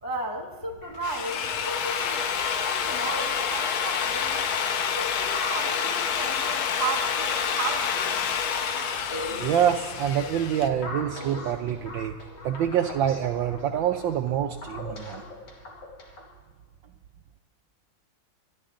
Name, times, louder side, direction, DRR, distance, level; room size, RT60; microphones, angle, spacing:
voice 1, 0.0-4.5 4.8-8.3, right 3 dB, 20° left, 1 dB, 0.6 m, -35 dB
Drill, 0.8-10.7, left 7 dB, 80° left, 1.7 m, -28 dB
sound 1, 5.3-16.3, left 2 dB, 55° left, 2.7 m, -40 dB
voice 2, 9.4-12.2 12.4-15.2, right 9 dB, 70° right, 5 dB, 1.3 m, -26 dB
24.5 x 11.0 x 3.8 m, 1.2 s
omnidirectional pair, 2.3 m